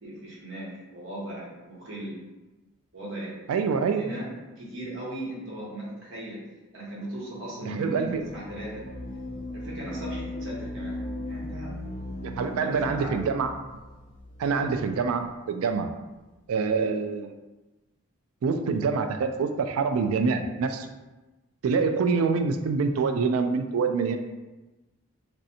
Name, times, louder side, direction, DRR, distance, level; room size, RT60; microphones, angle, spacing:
voice 1, 0.0-2.2 2.9-3.4 3.9-4.3 4.6-6.4 6.7-8.9 9.5-11.0 11.3-11.7 12.5-13.2, right 1 dB, 60° right, -5 dB, 1.0 m, -37 dB
voice 2, 3.5-4.1 7.7-8.2 12.2-13.5 14.4-15.9 16.5-17.3 18.4-20.9 21.6-24.2, right 5 dB, 85° right, 7 dB, 0.3 m, -26 dB
sound 1, 8.0-15.2, left 1 dB, 35° left, 0.4 m, -38 dB
3.1 x 2.6 x 2.7 m, 1.1 s
head